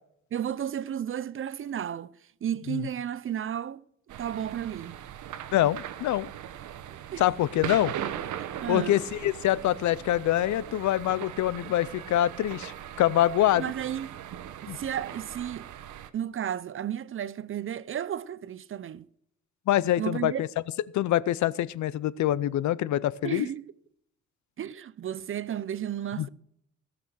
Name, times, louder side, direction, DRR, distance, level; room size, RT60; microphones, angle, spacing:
voice 1, 0.3-2.1 2.4-3.8 4.2-5.0 7.1-7.2 8.4-9.0 13.6-14.1 14.6-15.7 16.1-19.1 20.0-20.4 23.2-23.6 24.6-26.3, right 10 dB, 45° right, 0.6 m, -33 dB
sound 1, 4.1-16.1, right 10 dB, 75° right, 1.0 m, -39 dB
voice 2, 5.5-6.3 7.2-7.9 8.7-12.7 13.0-13.7 14.7-14.8 19.7-20.5 20.9-23.5 26.2-26.3, left 13 dB, 70° left, 0.6 m, -25 dB
17.0 x 6.0 x 6.3 m
cardioid pair, 90°, 30 cm